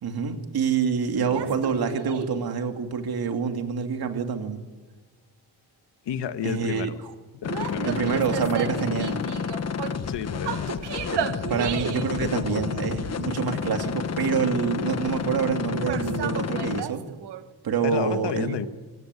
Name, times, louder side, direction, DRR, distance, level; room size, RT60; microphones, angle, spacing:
voice 1, 0.0-4.6 6.4-6.9 7.9-9.2 11.5-17.0 17.6-18.5, right 6 dB, 60° right, 5 dB, 2.7 m, -27 dB
voice 2, 1.1-1.6 6.0-6.9 7.4-7.9 10.1-10.9 12.2-12.7 17.8-18.7, left 8 dB, 85° left, 10 dB, 1.6 m, -31 dB
sound 1, 1.3-2.4 7.4-10.1 10.4-12.2 15.7-17.4, right 8 dB, 80° right, 1.5 m, -33 dB
sound 2, 7.4-16.8, left 6 dB, 40° left, 1.3 m, -30 dB
25.0 x 19.0 x 9.8 m, 1.4 s
wide cardioid pair, 150°, 41 cm